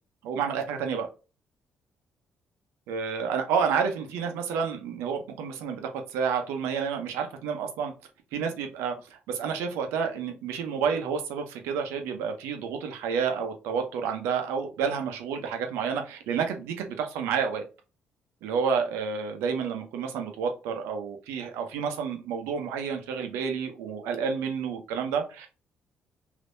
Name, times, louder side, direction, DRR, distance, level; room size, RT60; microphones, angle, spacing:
voice 1, 0.2-1.1 2.9-7.9 8.3-17.6 18.4-25.5, right 6 dB, 90° right, 5 dB, 0.7 m, -30 dB
3.5 x 2.8 x 2.6 m, 0.32 s
supercardioid pair, 65°, 4 cm